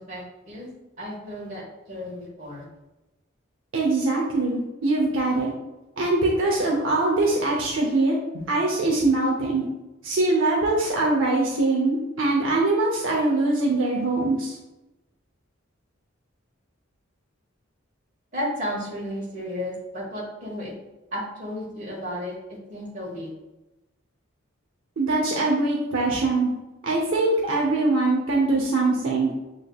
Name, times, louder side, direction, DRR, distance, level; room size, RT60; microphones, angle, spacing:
voice 1, 0.1-0.7 1.0-2.6 18.3-20.7 21.1-22.3 22.7-23.3, equal, 35° right, -4 dB, 1.5 m, -33 dB
voice 2, 3.7-5.5 6.0-9.6 10.0-14.6 25.0-26.5 26.8-29.3, right 2 dB, 70° right, -1 dB, 0.7 m, -22 dB
6.7 x 3.1 x 2.3 m, 1.0 s
head